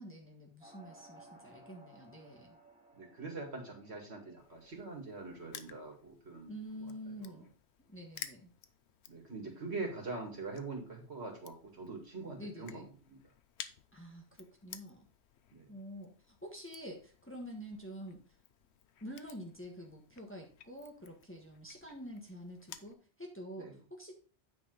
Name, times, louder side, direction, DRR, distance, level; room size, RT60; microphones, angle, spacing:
voice 1, 0.0-2.6 6.5-7.5 7.8-8.5 12.4-12.9 13.9-15.1 15.7-18.2 19.0-24.1, equal, 10° left, 0 dB, 1.4 m, -47 dB
sound 1, 0.6-5.6, right 1 dB, 5° right, 1.9 m, -60 dB
voice 2, 2.9-6.5 6.8-6.9 7.2-7.4 9.1-13.2 15.5-15.7 23.6-23.7, right 3 dB, 70° right, 1 dB, 2.4 m, -43 dB
Crushing, 4.4-22.9, left 9 dB, 75° left, 0.9 m, -55 dB
9.1 x 5.0 x 3.9 m, 0.38 s
omnidirectional pair, 1.2 m